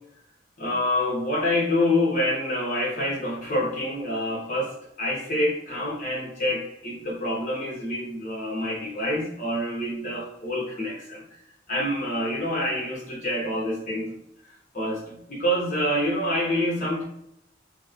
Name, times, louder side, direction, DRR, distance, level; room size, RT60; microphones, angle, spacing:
voice 1, 0.6-11.2 11.7-14.2 14.4-17.0, left 1 dB, 45° left, -3 dB, 0.8 m, -27 dB
3.0 x 2.0 x 2.3 m, 0.79 s
head